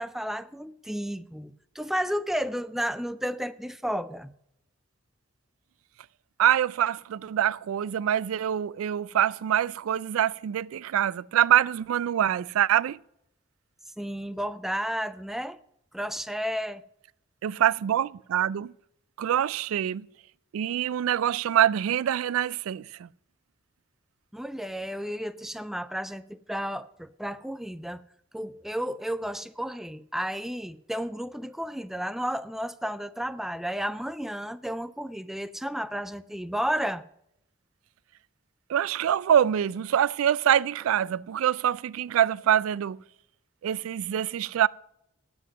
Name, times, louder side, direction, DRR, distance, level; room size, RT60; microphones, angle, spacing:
voice 1, 0.0-4.3 14.0-15.6 15.9-16.8 24.3-28.0 28.3-37.0, equal, ahead, 0.3 m, -32 dB
voice 2, 6.4-13.0 17.4-18.7 19.2-20.0 20.5-22.9 38.7-43.0 43.6-44.7, right 10 dB, 80° right, 0.3 m, -25 dB
9.1 x 7.8 x 6.1 m
head